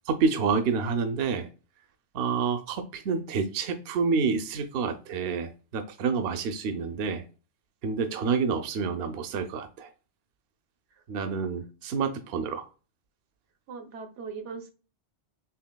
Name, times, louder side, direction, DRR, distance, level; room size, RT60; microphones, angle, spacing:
voice 1, 0.1-1.5 2.1-7.2 7.8-9.9 11.1-12.7, right 5 dB, 65° right, 0.8 m, -28 dB
voice 2, 13.7-14.7, right 5 dB, 85° right, 1.0 m, -39 dB
5.7 x 2.6 x 2.2 m
omnidirectional pair, 1.2 m